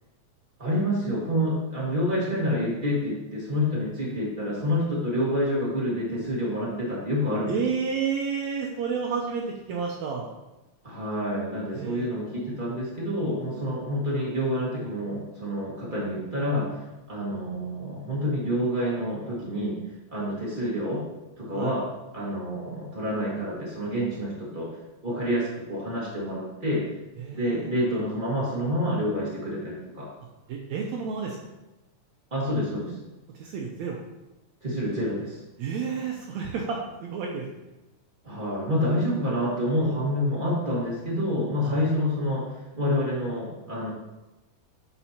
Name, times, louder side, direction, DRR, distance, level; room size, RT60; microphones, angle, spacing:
voice 1, 0.6-7.6 10.8-19.8 20.1-21.0 21.4-21.9 22.1-24.7 25.0-26.8 27.3-30.1 32.3-32.9 34.6-35.4 38.2-43.9, equal, 25° right, -6 dB, 1.1 m, -28 dB
voice 2, 7.5-10.3 11.7-12.1 21.5-21.7 27.2-27.7 30.5-31.4 33.3-34.0 35.6-37.4 41.6-41.8, right 6 dB, 80° right, 0 dB, 1.6 m, -30 dB
8.5 x 6.6 x 2.9 m, 1.0 s
omnidirectional pair, 4.0 m